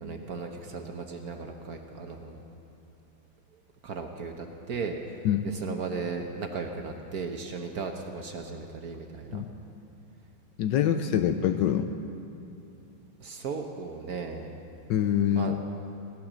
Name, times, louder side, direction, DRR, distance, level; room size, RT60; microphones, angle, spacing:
voice 1, 0.0-2.4 3.8-5.0 5.4-9.4 13.2-14.5 15.4-15.6, right 5 dB, 60° right, 4 dB, 1.1 m, -36 dB
voice 2, 10.6-11.9 14.9-15.6, left 10 dB, 75° left, 8 dB, 1.1 m, -25 dB
17.5 x 12.0 x 6.2 m, 2.7 s
omnidirectional pair, 2.3 m